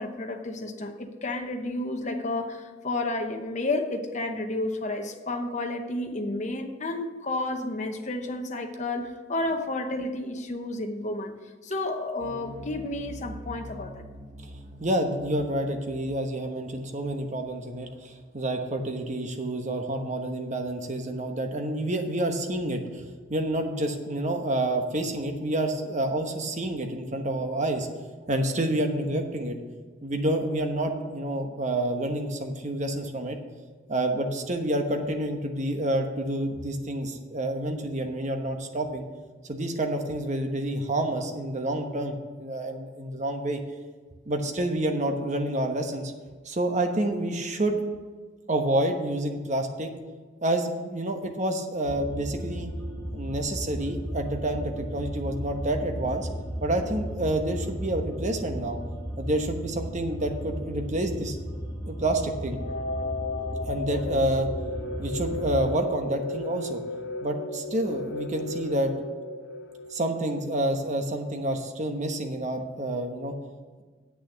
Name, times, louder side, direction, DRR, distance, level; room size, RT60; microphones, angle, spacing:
voice 1, 0.0-11.3 11.6-14.0, left 2 dB, 40° left, 5 dB, 0.9 m, -31 dB
sound 1, 12.2-18.6, left 1 dB, 20° right, 1.6 m, -45 dB
voice 2, 14.8-23.0 23.3-27.9 28.3-29.6 30.0-33.4 33.9-39.0 39.4-43.6 44.3-46.1 46.4-47.8 48.5-49.9 50.4-52.7 53.1-56.3 56.6-58.8 59.2-61.4 61.9-62.6 63.6-64.5 65.0-66.8 67.2-68.9 69.9-73.3, right 1 dB, 40° right, 4 dB, 1.1 m, -28 dB
sound 2, 51.8-65.7, equal, 15° left, 1.8 m, -35 dB
sound 3, 62.5-70.5, left 2 dB, 70° left, 0.8 m, -35 dB
8.3 x 6.6 x 7.2 m, 1.4 s
head